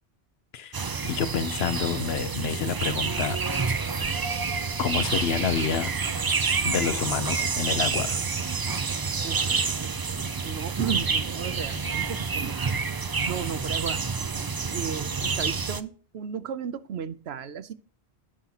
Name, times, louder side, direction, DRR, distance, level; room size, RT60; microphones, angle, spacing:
sound 1, 0.7-15.8, right 5 dB, 35° right, 0.4 m, -28 dB
voice 1, 1.0-3.4 4.8-5.9 6.6-8.3, left 7 dB, 75° left, 14 dB, 1.0 m, -28 dB
voice 2, 9.2-9.8 10.4-12.7 13.3-14.0 14.3-17.7, right 8 dB, 75° right, 13 dB, 1.0 m, -35 dB
16.0 x 5.6 x 2.9 m, 0.43 s
omnidirectional pair, 1.1 m